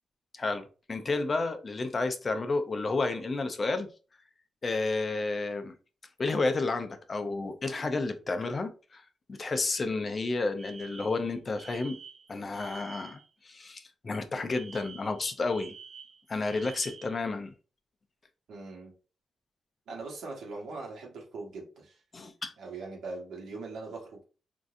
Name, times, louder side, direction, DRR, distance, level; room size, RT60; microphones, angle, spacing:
voice 1, 0.4-3.9 4.6-5.7 6.2-9.0 9.3-12.0 12.3-15.7 16.3-17.5 22.1-22.5, left 3 dB, 35° left, 0.5 m, -31 dB
Alarm, 10.6-13.3 14.5-17.2, right 6 dB, 55° right, 0.4 m, -49 dB
voice 2, 18.5-18.9 19.9-22.0 22.6-24.2, right 3 dB, 90° right, 1.3 m, -41 dB
3.7 x 2.6 x 2.5 m
cardioid pair, 110°, 0 cm